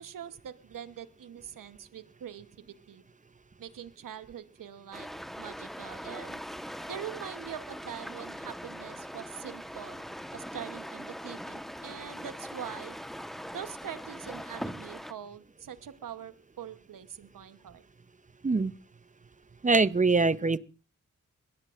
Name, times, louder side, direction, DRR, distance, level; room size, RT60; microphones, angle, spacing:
voice 1, 0.0-2.5 2.9-3.0 3.6-5.1 5.4-6.4 6.9-10.0 10.3-13.0 13.5-17.8, right 9 dB, 80° right, 12 dB, 1.0 m, -43 dB
sound 1, 4.9-15.1, equal, ahead, 1.1 m, -41 dB
voice 2, 19.6-20.6, right 3 dB, 25° right, 17 dB, 0.6 m, -23 dB
21.5 x 16.5 x 2.5 m, 0.36 s
cardioid pair, 50°, 32 cm